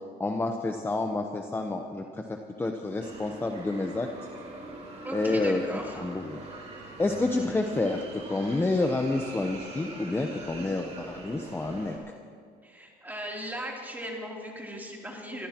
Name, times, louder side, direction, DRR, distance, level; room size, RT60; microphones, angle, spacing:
voice 1, 0.2-4.1 5.1-5.6 6.0-6.4 7.0-12.0, left 2 dB, 15° left, 4 dB, 0.9 m, -29 dB
sound 1, 3.0-12.0, right 2 dB, 40° right, 3.8 m, -43 dB
voice 2, 5.0-6.0 12.6-15.5, equal, 10° right, -2 dB, 3.3 m, -38 dB
25.0 x 14.5 x 3.0 m, 2.2 s
cardioid pair, 110°, 17 cm